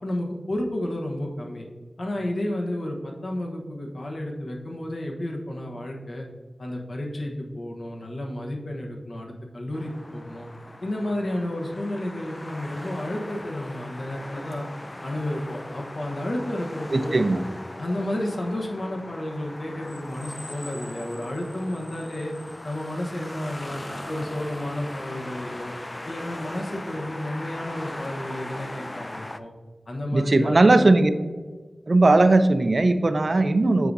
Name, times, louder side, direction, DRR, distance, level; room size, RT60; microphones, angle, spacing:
voice 1, 0.0-1.6 2.0-6.3 6.6-10.5 10.8-14.7 15.0-17.2 17.8-22.3 22.6-23.8 24.1-25.7 26.0-29.5 29.9-30.9, left 1 dB, 70° left, 0 dB, 1.1 m, -31 dB
sound 1, 9.7-29.4, left 1 dB, 25° left, 0.3 m, -39 dB
voice 2, 16.9-17.4 30.1-31.1 31.9-33.9, right 2 dB, 55° right, 10 dB, 0.4 m, -18 dB
8.3 x 4.8 x 2.7 m, 1.4 s
wide cardioid pair, 55°, 0 cm